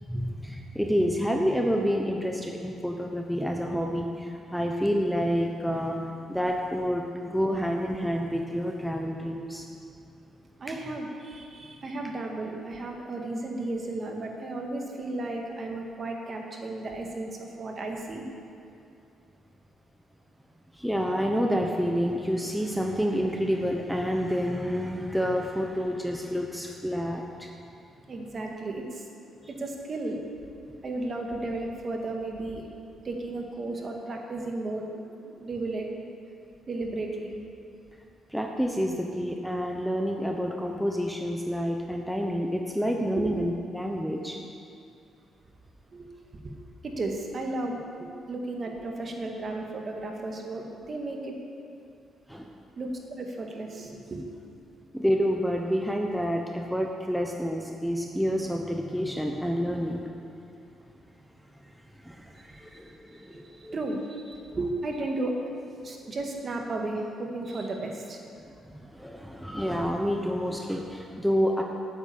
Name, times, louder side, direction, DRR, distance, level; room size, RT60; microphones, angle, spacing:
voice 1, 0.0-9.7 20.7-27.5 38.3-44.4 52.3-52.5 54.9-60.1 62.0-63.8 64.5-64.6 68.4-71.6, equal, ahead, 1 dB, 0.9 m, -28 dB
voice 2, 10.6-17.3 17.6-18.2 28.1-29.1 29.5-30.2 30.8-32.7 33.0-35.9 36.7-37.3 43.1-43.3 45.9-46.5 46.8-51.4 52.8-54.2 62.4-62.6 63.1-65.3 65.8-68.2, right 2 dB, 40° right, 1 dB, 1.8 m, -34 dB
9.0 x 8.0 x 8.8 m, 2.6 s
cardioid pair, 90°, 0 cm